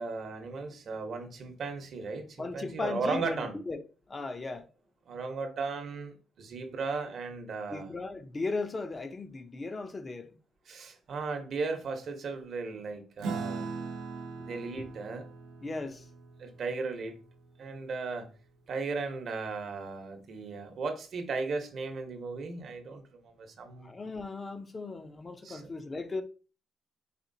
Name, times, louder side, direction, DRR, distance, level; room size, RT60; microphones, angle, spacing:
voice 1, 0.0-3.6 5.1-7.9 10.7-13.7 14.4-15.3 16.4-17.2 17.6-18.3 18.7-23.9 25.4-25.7, right 4 dB, 60° right, 0.9 m, -36 dB
voice 2, 2.4-3.8 4.1-4.7 7.7-10.3 15.6-16.0 23.8-26.2, left 3 dB, 30° left, 0.5 m, -37 dB
Acoustic guitar / Strum, 13.2-18.0, right 4 dB, 85° right, 0.7 m, -40 dB
4.2 x 3.5 x 2.6 m
cardioid pair, 90°, 0 cm